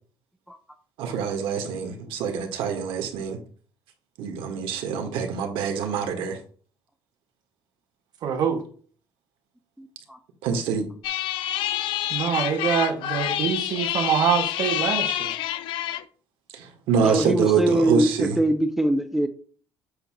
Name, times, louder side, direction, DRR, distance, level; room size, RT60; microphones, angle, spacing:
voice 1, 1.0-3.4 4.2-6.4 10.4-10.9 16.5-18.4, right 6 dB, 85° right, 1.5 m, -25 dB
voice 2, 8.2-8.6 12.1-15.4, right 7 dB, 55° right, 1.3 m, -25 dB
voice 3, 9.8-10.2 17.0-19.3, right 1 dB, 5° right, 0.4 m, -23 dB
sound 1, 11.0-16.0, left 13 dB, 75° left, 0.6 m, -27 dB
8.0 x 2.8 x 6.0 m
cardioid pair, 175°, 9 cm